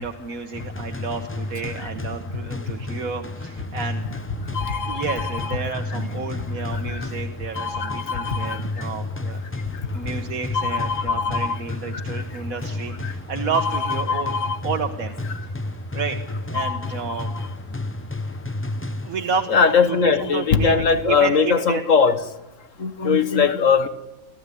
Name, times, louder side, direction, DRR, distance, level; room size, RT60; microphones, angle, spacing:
voice 1, 0.0-4.1 4.4-4.6 4.9-9.4 9.9-14.3 14.6-15.2 15.4-15.5 15.9-17.3 19.0-21.8, right 6 dB, 80° right, 4 dB, 1.7 m, -31 dB
sound 1, 0.5-19.5, left 2 dB, 15° left, 0.4 m, -31 dB
voice 2, 4.5-5.0 5.3-5.5 5.9-6.1 6.9-7.1 7.6-8.6 10.5-11.6 11.9-12.0 13.0-13.1 14.1-14.6 16.6-16.8 19.5-22.2 22.8-23.9, left 5 dB, 65° left, 10 dB, 1.8 m, -21 dB
27.5 x 14.5 x 9.9 m, 1.0 s
omnidirectional pair, 1.4 m